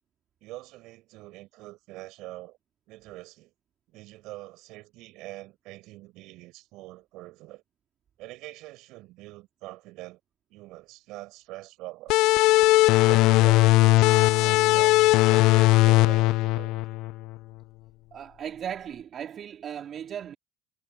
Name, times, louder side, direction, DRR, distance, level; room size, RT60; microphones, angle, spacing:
voice 1, 0.4-2.6 2.9-3.5 3.9-7.6 8.2-10.2 10.5-12.4 13.0-15.0 15.3-16.8, right 19 dB, 70° right, 5.0 m, -44 dB
sound 1, 12.1-17.4, left 19 dB, 70° left, 0.4 m, -19 dB
voice 2, 18.1-20.4, right 9 dB, 50° right, 2.7 m, -37 dB
hypercardioid pair, 70°, 0 cm